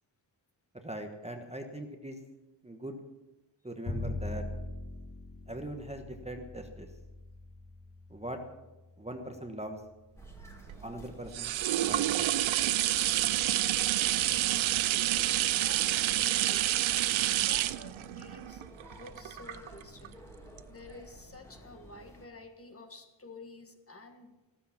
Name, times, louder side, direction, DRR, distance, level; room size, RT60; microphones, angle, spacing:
voice 1, 0.8-2.2 2.6-3.0 3.6-4.4 5.5-6.9 8.1-8.4 9.0-9.8 10.8-12.3, right 1 dB, 15° right, 4 dB, 1.2 m, -41 dB
Bowed string instrument, 3.8-10.0, left 2 dB, 45° left, 2.6 m, -42 dB
sound 1, 10.2-22.3, equal, 5° left, 2.1 m, -53 dB
sound 2, 10.3-20.1 20.6-20.7, right 14 dB, 85° right, 0.5 m, -28 dB
voice 2, 10.4-10.8 13.1-16.7 17.4-20.2 20.7-24.4, left 2 dB, 30° left, 5 dB, 1.5 m, -52 dB
14.0 x 13.0 x 5.9 m, 1.1 s
wide cardioid pair, 130°, 46 cm